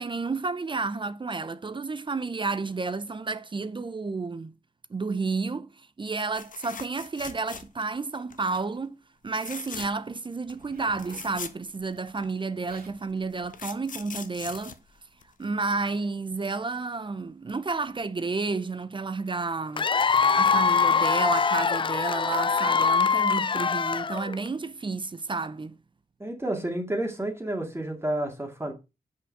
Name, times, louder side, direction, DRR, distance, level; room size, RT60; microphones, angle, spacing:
voice 1, 0.0-4.5 4.9-9.0 9.2-14.8 15.4-19.9 20.3-25.8, right 4 dB, 30° right, 0.5 m, -31 dB
sound 1, 6.3-8.0 8.3-8.6 9.3-10.1 10.5-10.6 10.8-12.3 13.1-15.6 17.5-17.7 18.0-18.1, left 6 dB, 55° left, 0.8 m, -41 dB
Zipper (clothing), 10.5-11.3 12.3-12.4 12.6-13.0 13.7-13.9, right 2 dB, 75° right, 3.6 m, -50 dB
Cheering / Applause / Crowd, 19.8-24.5, left 5 dB, 35° left, 0.4 m, -23 dB
voice 2, 26.2-28.7, right 1 dB, 15° right, 2.1 m, -30 dB
6.5 x 5.3 x 4.7 m
cardioid pair, 70°, 16 cm